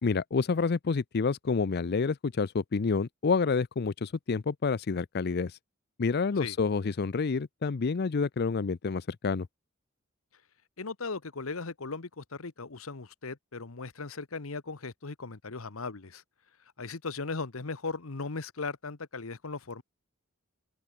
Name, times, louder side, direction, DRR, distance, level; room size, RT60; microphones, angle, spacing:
voice 1, 0.0-5.6 6.0-9.5, left 4 dB, 50° left, 0.5 m, -28 dB
voice 2, 10.8-16.2 16.8-19.8, left 4 dB, 85° left, 1.2 m, -38 dB
open air
head